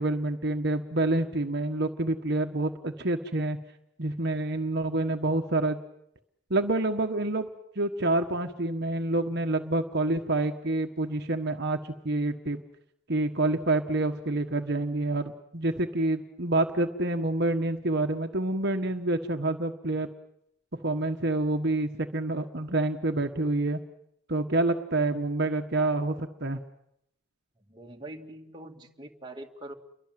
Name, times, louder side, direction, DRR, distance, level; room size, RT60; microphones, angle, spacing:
voice 1, 0.0-3.6 4.0-5.8 6.5-7.5 7.7-11.8 12.0-12.6 13.1-20.1 20.7-23.8 24.3-26.6, right 2 dB, 55° right, 5 dB, 1.5 m, -27 dB
voice 2, 27.6-29.7, right 1 dB, 20° right, 2 dB, 2.2 m, -43 dB
30.0 x 23.0 x 7.7 m, 0.77 s
head